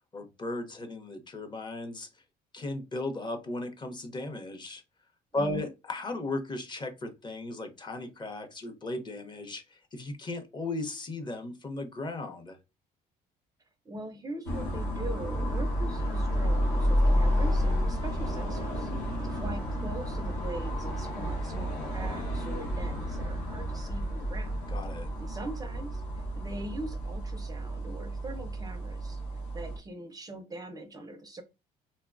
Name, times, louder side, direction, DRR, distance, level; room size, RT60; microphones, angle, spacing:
voice 1, 0.1-2.1 2.5-4.8 5.3-12.6 24.7-25.1, left 2 dB, 25° left, 0.7 m, -36 dB
voice 2, 5.3-5.7 13.9-18.9 19.2-24.6 25.2-29.2 29.5-31.4, right 1 dB, 20° right, 0.4 m, -42 dB
sound 1, 14.5-29.8, equal, 85° left, 1.0 m, -30 dB
3.2 x 2.1 x 2.4 m
cardioid pair, 110°, 17 cm